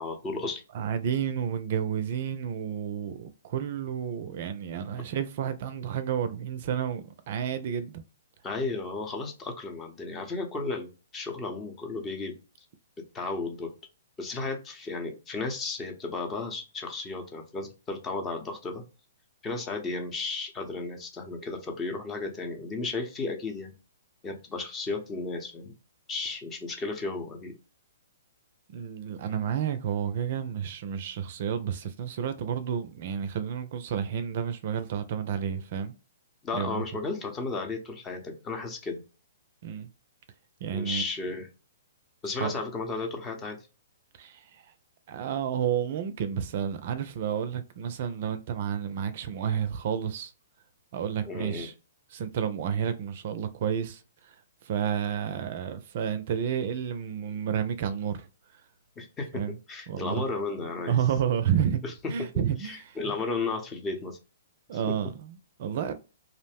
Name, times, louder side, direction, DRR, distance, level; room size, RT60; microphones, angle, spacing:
voice 1, 0.0-0.6 8.4-12.4 13.1-13.7 14.2-18.8 19.4-23.7 24.2-25.7 26.1-27.5 36.4-39.0 40.7-41.5 42.2-43.6 51.2-51.7 59.0-59.4 59.7-61.0 61.8-61.9 62.6-64.2, left 3 dB, 20° left, 0.7 m, -34 dB
voice 2, 0.7-8.0 28.7-35.9 36.5-36.8 39.6-39.9 40.6-41.0 42.4-42.5 44.2-44.7 45.1-50.3 50.9-51.7 52.1-54.4 54.6-58.3 59.3-59.5 59.9-60.2 60.9-63.2 64.7-65.9, right 8 dB, 50° right, 0.4 m, -31 dB
2.4 x 2.0 x 3.4 m
hypercardioid pair, 135°, 0 cm